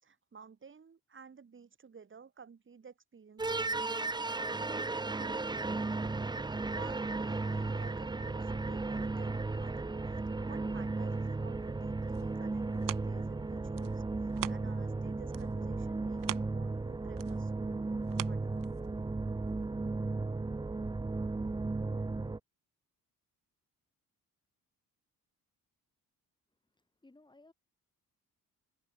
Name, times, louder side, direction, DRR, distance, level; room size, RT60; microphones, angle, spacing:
voice 1, 0.0-5.6 6.6-10.0 10.4-14.0 14.5-17.8 18.3-18.7, right 6 dB, 35° right, 7.2 m, -54 dB
sound 1, 3.4-22.4, right 3 dB, 15° right, 0.8 m, -35 dB
sound 2, 11.8-15.0 15.3-19.1 19.6-19.7, right 12 dB, 70° right, 1.5 m, -44 dB
voice 2, 26.6-27.5, left 2 dB, 15° left, 6.5 m, -61 dB
cardioid pair, 130°, 34 cm